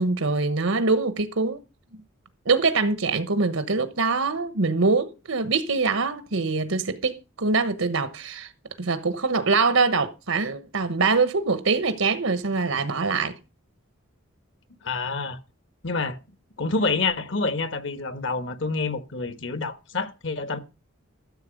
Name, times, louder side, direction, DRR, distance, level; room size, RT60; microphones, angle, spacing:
voice 1, 0.0-1.6 2.4-8.5 8.8-13.3, right 4 dB, 85° right, 1.2 m, -24 dB
voice 2, 14.8-15.4 15.8-16.2 16.6-20.6, left 3 dB, 65° left, 1.3 m, -27 dB
13.5 x 7.7 x 5.2 m
head